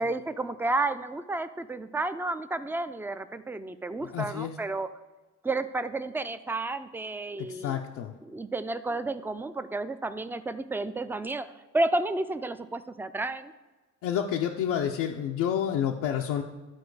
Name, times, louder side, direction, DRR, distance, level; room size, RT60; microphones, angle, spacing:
voice 1, 0.0-4.9 5.4-7.8 8.2-11.5 11.7-13.5, right 2 dB, 5° right, 12 dB, 0.3 m, -31 dB
voice 2, 4.1-4.5 7.4-8.1 14.0-16.4, left 9 dB, 90° left, 1 dB, 0.6 m, -29 dB
11.5 x 4.4 x 4.7 m, 1.2 s
cardioid pair, 90°, 30 cm